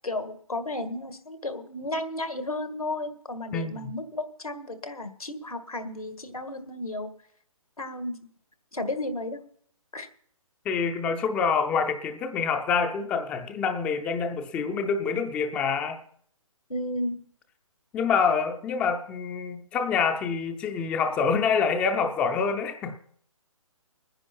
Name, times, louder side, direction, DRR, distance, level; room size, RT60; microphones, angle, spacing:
voice 1, 0.0-7.1 7.8-8.3 8.7-9.4 9.9-10.1 16.7-17.2, left 1 dB, 85° left, 1.8 m, -33 dB
voice 2, 3.5-3.9 10.7-16.0 17.9-23.0, left 5 dB, 5° left, 0.4 m, -26 dB
21.0 x 9.8 x 4.4 m
figure-of-eight pair, 140°, 18 cm